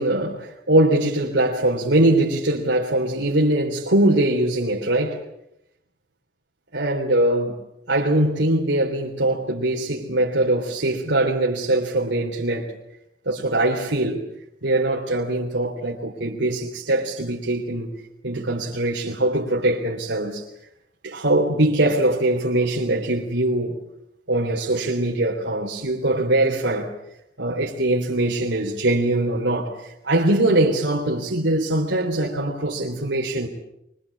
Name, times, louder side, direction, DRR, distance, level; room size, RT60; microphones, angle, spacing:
voice 1, 0.0-5.2 6.7-7.6 7.9-12.7 13.3-14.2 14.6-17.9 18.2-20.4 21.0-23.8 24.3-26.9 27.4-33.5, right 1 dB, 90° right, 3.5 m, -22 dB
25.0 x 23.5 x 8.5 m
head